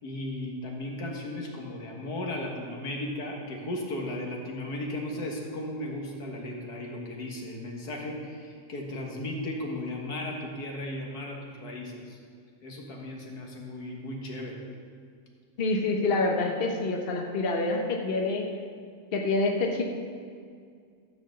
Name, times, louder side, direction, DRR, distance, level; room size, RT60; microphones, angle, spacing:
voice 1, 0.0-12.2 12.6-14.6, left 1 dB, 80° left, 0 dB, 2.1 m, -36 dB
voice 2, 15.6-18.5 19.1-19.8, left 3 dB, 40° left, 2 dB, 1.1 m, -27 dB
13.5 x 4.9 x 7.6 m, 2.1 s
omnidirectional pair, 1.6 m